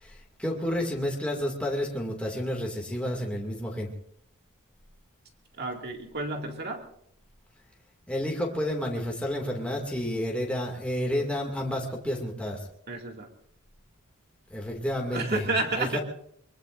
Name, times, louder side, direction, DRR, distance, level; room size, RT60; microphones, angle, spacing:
voice 1, 0.0-3.9 8.1-12.6 14.5-15.4 15.8-16.0, equal, 5° left, -1 dB, 2.4 m, -30 dB
voice 2, 5.6-6.9 12.9-13.3 15.1-16.0, right 3 dB, 50° right, 3 dB, 2.3 m, -31 dB
23.5 x 23.5 x 2.6 m, 0.69 s
head